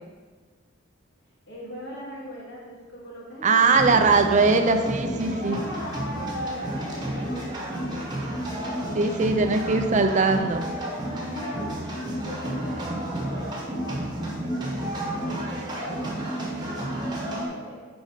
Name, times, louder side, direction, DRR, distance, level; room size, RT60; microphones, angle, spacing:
voice 1, 1.5-4.4 5.4-10.5 11.1-11.8 12.1-14.0 14.4-17.8, equal, 65° left, -4 dB, 2.0 m, -41 dB
voice 2, 3.4-5.6 8.9-10.6, right 4 dB, 40° right, 7 dB, 0.6 m, -20 dB
sound 1, 3.7-17.5, right 1 dB, 20° right, 1.3 m, -31 dB
6.4 x 5.3 x 5.1 m, 1.4 s
head